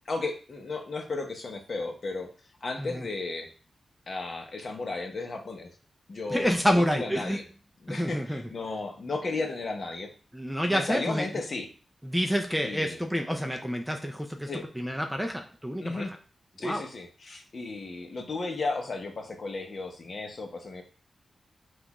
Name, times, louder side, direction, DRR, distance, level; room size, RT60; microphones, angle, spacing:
voice 1, 0.1-2.3 2.6-3.5 4.1-5.7 6.1-7.4 7.8-10.1 10.7-11.7 12.6-13.0 14.5-14.7 15.8-16.1 16.6-20.8, left 3 dB, 45° left, 3 dB, 0.8 m, -34 dB
voice 2, 6.3-7.4 7.9-8.4 10.3-11.3 12.0-14.5 14.8-16.1 16.6-16.8, equal, 5° right, 4 dB, 0.4 m, -28 dB
6.1 x 2.3 x 2.9 m, 0.37 s
wide cardioid pair, 130°, 0 cm